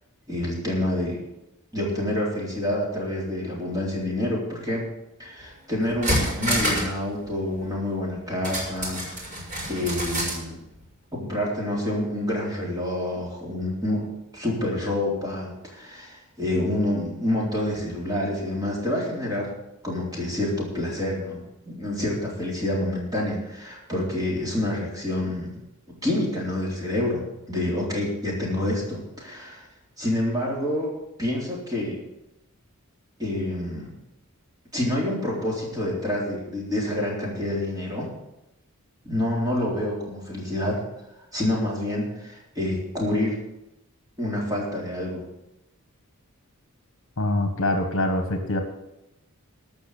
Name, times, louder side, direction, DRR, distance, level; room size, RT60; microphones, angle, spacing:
voice 1, 0.3-1.2 1.7-4.9 5.2-9.4 9.7-10.6 11.1-14.1 14.3-19.5 19.8-25.6 26.0-27.2 27.5-29.7 30.0-30.9 31.2-32.0 33.2-33.9 34.7-38.1 39.0-40.8 41.3-43.4 44.2-45.2, left 1 dB, 15° right, -3 dB, 3.7 m, -27 dB
sound 1, 5.4-5.5 5.8-7.0 7.2-7.3 8.4-10.4 10.7-10.8, equal, 35° right, 5.0 m, -27 dB
voice 2, 47.2-48.6, left 1 dB, 60° left, 5 dB, 1.5 m, -24 dB
13.5 x 6.2 x 8.4 m, 0.90 s
head